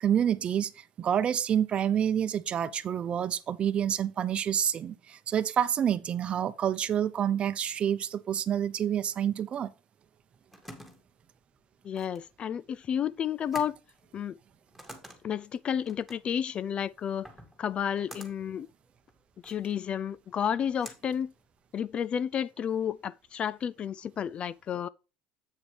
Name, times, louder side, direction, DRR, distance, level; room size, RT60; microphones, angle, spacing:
voice 1, 0.0-9.7, right 9 dB, 35° right, 0.7 m, -28 dB
sound 1, 10.2-22.0, equal, 5° left, 2.1 m, -51 dB
voice 2, 11.8-13.7 14.1-14.4 15.2-17.3 17.6-18.7 19.4-21.3 21.7-24.9, left 8 dB, 35° left, 0.3 m, -31 dB
8.2 x 7.1 x 3.3 m
cardioid pair, 130°, 3 cm